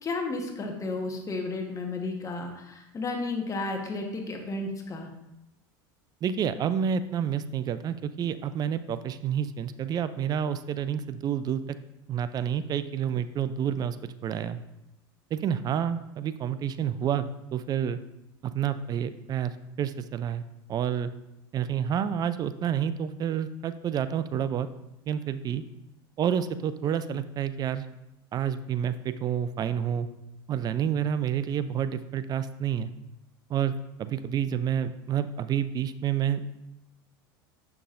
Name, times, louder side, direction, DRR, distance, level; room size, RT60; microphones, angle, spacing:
voice 1, 0.0-5.1, left 3 dB, 25° left, 2 dB, 1.2 m, -33 dB
voice 2, 6.2-11.6 12.1-14.0 14.2-14.6 15.3-18.0 18.4-19.5 19.8-20.4 20.7-21.1 21.5-24.7 25.1-25.6 26.2-27.9 28.3-30.1 30.5-32.9 33.5-36.6, right 8 dB, 35° right, 13 dB, 0.4 m, -29 dB
6.8 x 5.8 x 2.5 m, 0.88 s
hypercardioid pair, 100°, 12 cm